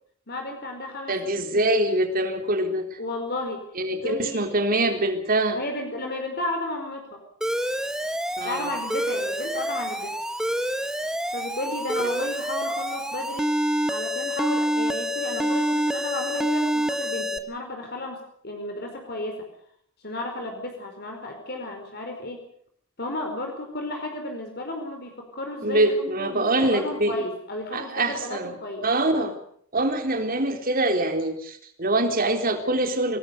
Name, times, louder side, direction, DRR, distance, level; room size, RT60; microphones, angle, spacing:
voice 1, 0.3-1.2 1.5-1.7 3.0-3.7 4.0-4.5 5.5-7.2 8.4-10.2 11.3-13.5 13.9-18.2 18.4-19.5 20.0-22.4 23.0-28.9, left 1 dB, 50° left, 3 dB, 4.8 m, -33 dB
voice 2, 1.1-3.0 3.8-5.6 8.4-8.7 25.6-27.2 27.7-28.6 28.8-29.4 29.7-33.2, right 1 dB, 40° right, 5 dB, 3.8 m, -24 dB
Alarm, 7.4-17.4, equal, 5° right, 1.5 m, -27 dB
26.0 x 20.0 x 6.7 m, 0.64 s
head